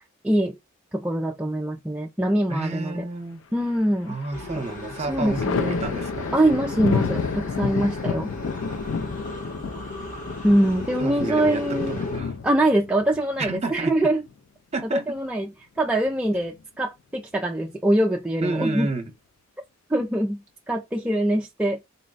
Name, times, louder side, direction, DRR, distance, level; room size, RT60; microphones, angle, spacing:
voice 1, 0.2-0.6 0.9-3.1 3.5-4.2 5.1-5.8 6.3-8.3 10.4-11.9 12.4-14.2 14.9-18.9 19.9-21.8, right 1 dB, 5° right, 0.3 m, -23 dB
voice 2, 2.5-3.4 4.1-6.3 9.7-9.9 11.0-12.3 13.4-13.9 14.7-15.0 18.4-19.1, right 2 dB, 35° right, 0.8 m, -30 dB
Thunder, 3.6-4.3 4.7-14.3 15.8-16.6, left 5 dB, 70° left, 0.4 m, -30 dB
sound 1, 4.3-12.2, left 1 dB, 40° left, 1.0 m, -35 dB
3.9 x 2.1 x 3.9 m
head